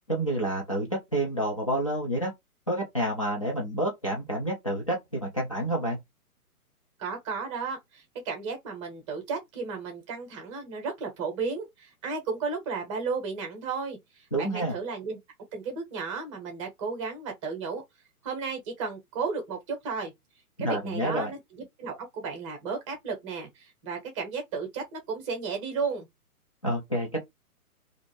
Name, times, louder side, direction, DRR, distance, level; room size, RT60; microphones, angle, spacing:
voice 1, 0.1-2.3 2.7-6.0 14.3-14.7 20.6-21.3 26.6-27.2, right 1 dB, 25° left, 0.4 m, -29 dB
voice 2, 7.0-15.2 15.5-17.8 18.2-20.1 20.6-21.4 21.8-26.1, right 5 dB, 20° right, 0.8 m, -34 dB
2.6 x 2.4 x 3.1 m
figure-of-eight pair, 125°, 46 cm